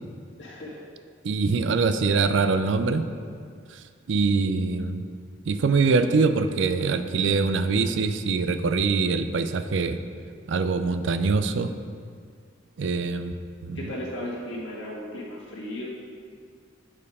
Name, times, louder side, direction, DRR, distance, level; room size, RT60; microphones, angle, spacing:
voice 1, 0.4-0.8 13.7-15.9, left 1 dB, 75° left, -6 dB, 1.8 m, -35 dB
voice 2, 1.2-3.0 4.1-5.1 5.5-10.0 10.5-11.7 12.8-13.3 13.6-13.9, right 4 dB, 75° right, 10 dB, 0.4 m, -23 dB
7.3 x 4.6 x 4.8 m, 2.2 s
head